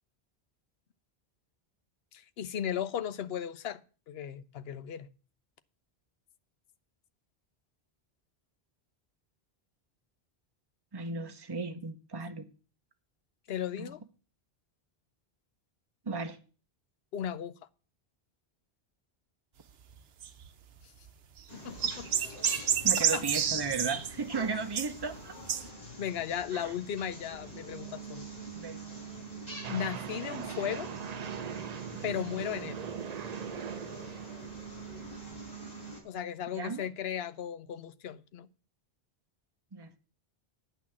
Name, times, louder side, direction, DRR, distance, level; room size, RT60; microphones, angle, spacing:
voice 1, 2.1-3.8 4.1-5.1 13.5-14.0 17.1-17.5 21.5-22.4 23.1-23.2 26.0-28.3 29.7-30.9 32.0-32.8 36.0-38.5, left 9 dB, 70° left, 13 dB, 0.9 m, -36 dB
voice 2, 10.9-12.5 13.8-13.9 16.0-16.4 22.8-25.4 26.5-26.7 28.5-28.9 36.5-36.9 39.7-40.0, right 4 dB, 25° right, 6 dB, 0.9 m, -35 dB
sound 1, 20.2-20.5 21.1-21.2 21.4-21.5 21.8-24.1 24.7-25.2 25.5-25.6, right 8 dB, 70° right, 1.0 m, -29 dB
sound 2, 21.5-36.0, right 3 dB, 40° left, 4.5 m, -45 dB
sound 3, 29.6-34.7, right 7 dB, 45° right, 0.6 m, -40 dB
9.3 x 6.1 x 7.4 m, 0.37 s
omnidirectional pair, 1.1 m